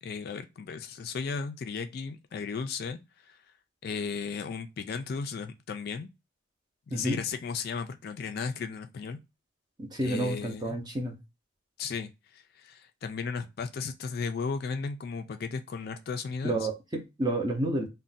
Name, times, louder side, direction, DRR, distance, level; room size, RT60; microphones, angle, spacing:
voice 1, 0.0-3.4 3.8-6.1 6.9-9.2 10.0-10.8 11.8-16.6, left 5 dB, 50° left, 0.3 m, -35 dB
voice 2, 9.8-11.2 16.4-17.9, right 1 dB, 20° right, 0.6 m, -30 dB
2.5 x 2.1 x 3.8 m
head